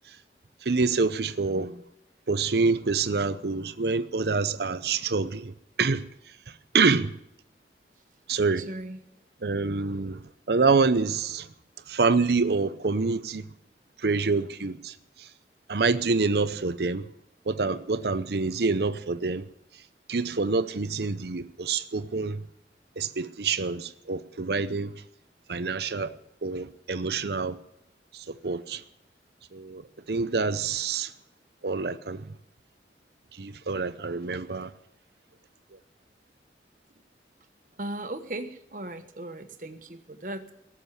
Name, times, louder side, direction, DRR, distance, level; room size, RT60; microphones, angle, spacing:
voice 1, 0.6-1.7 2.3-6.1 6.5-7.1 8.3-8.7 9.4-10.2 10.5-11.5 11.9-13.4 14.0-15.3 15.7-17.1 17.5-19.5 20.1-22.4 23.0-24.9 25.5-26.2 26.4-27.6 28.1-28.8 29.5-31.1 31.6-32.3 33.3-34.7, right 4 dB, 70° right, 0.7 m, -26 dB
voice 2, 8.6-9.0 37.8-40.5, right 1 dB, 50° right, 1.3 m, -37 dB
17.5 x 7.4 x 9.7 m
head